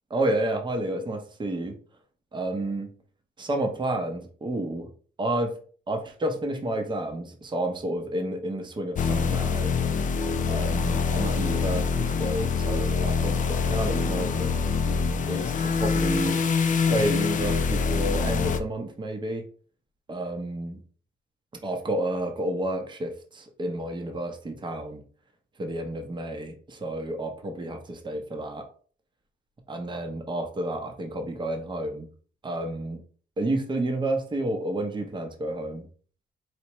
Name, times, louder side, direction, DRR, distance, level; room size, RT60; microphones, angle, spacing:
voice 1, 0.1-1.8 2.3-2.9 3.4-4.9 5.2-5.6 5.9-9.7 10.5-14.6 15.3-16.4 16.7-19.5 20.1-20.8 21.6-25.0 25.6-28.6 29.7-32.1 32.4-33.0 33.4-35.9, right 1 dB, 25° right, 4 dB, 0.8 m, -30 dB
sound 1, 9.0-18.6, left 5 dB, 40° left, 0.4 m, -25 dB
4.5 x 2.6 x 3.0 m, 0.43 s
cardioid pair, 90°, 20 cm